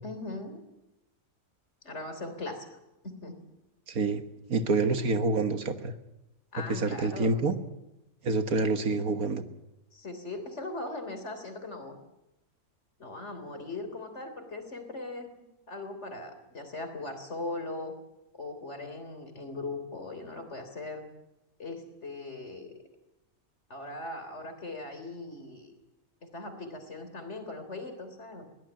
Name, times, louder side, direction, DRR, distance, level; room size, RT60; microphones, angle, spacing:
voice 1, 0.0-0.6 1.8-2.7 3.0-3.4 6.5-7.3 9.9-12.0 13.0-18.0 18.3-21.0 21.6-22.8 23.7-25.7 26.2-28.4, left 2 dB, 50° left, 7 dB, 3.7 m, -39 dB
voice 2, 3.9-4.2 4.5-5.9 6.7-7.5 8.2-9.4, right 3 dB, 75° right, 9 dB, 1.9 m, -27 dB
22.5 x 17.0 x 9.0 m, 0.92 s
omnidirectional pair, 1.5 m